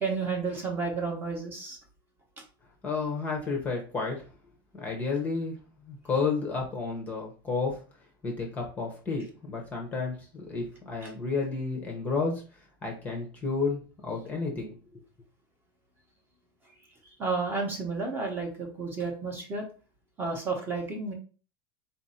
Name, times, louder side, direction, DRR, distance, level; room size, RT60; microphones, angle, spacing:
voice 1, 0.0-1.8 11.0-11.1 17.2-19.6 20.2-21.1, right 4 dB, 15° right, 1 dB, 0.8 m, -31 dB
voice 2, 2.8-4.2 4.7-5.5 5.8-7.8 8.2-12.4 12.8-15.0, left 4 dB, 10° left, 0 dB, 0.8 m, -31 dB
4.0 x 2.6 x 4.2 m, 0.37 s
supercardioid pair, 170°, 13 cm